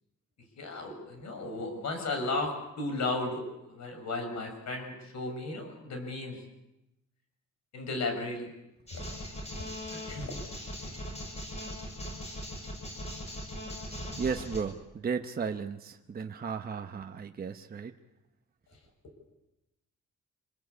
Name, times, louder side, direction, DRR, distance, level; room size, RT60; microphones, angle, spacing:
voice 1, 0.6-2.5 2.8-3.4 3.7-6.4 7.7-8.5 8.9-9.0 9.9-10.3, left 2 dB, 60° left, 5 dB, 6.7 m, -34 dB
sound 1, 8.9-14.6, equal, 20° left, 7.4 m, -40 dB
voice 2, 14.2-17.9, right 6 dB, 30° right, 5 dB, 0.9 m, -35 dB
27.0 x 21.0 x 8.3 m, 0.92 s
wide cardioid pair, 180°, 31 cm